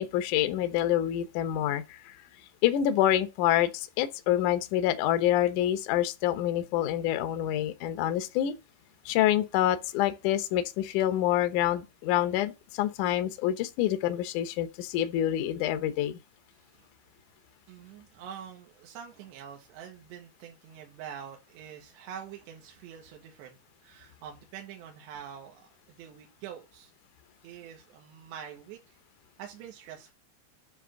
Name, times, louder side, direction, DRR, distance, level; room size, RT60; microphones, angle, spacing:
voice 1, 0.0-2.1 2.6-8.5 9.1-16.2, left 12 dB, 80° left, 1.8 m, -27 dB
voice 2, 17.7-25.7 26.0-26.9 27.4-29.0 29.4-30.1, right 8 dB, 75° right, 3.4 m, -45 dB
10.0 x 3.5 x 6.2 m
omnidirectional pair, 5.1 m